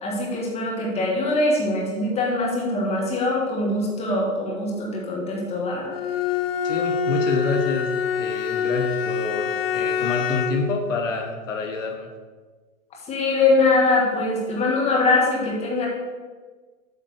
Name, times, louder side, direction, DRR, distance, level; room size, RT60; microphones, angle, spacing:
voice 1, 0.0-5.9 13.1-15.9, left 2 dB, 15° left, -3 dB, 1.6 m, -22 dB
Bowed string instrument, 5.9-10.8, left 7 dB, 45° left, 0.4 m, -25 dB
voice 2, 6.6-12.1, left 3 dB, 60° left, 3 dB, 1.1 m, -27 dB
8.2 x 3.8 x 6.4 m, 1.4 s
hypercardioid pair, 125°, 43 cm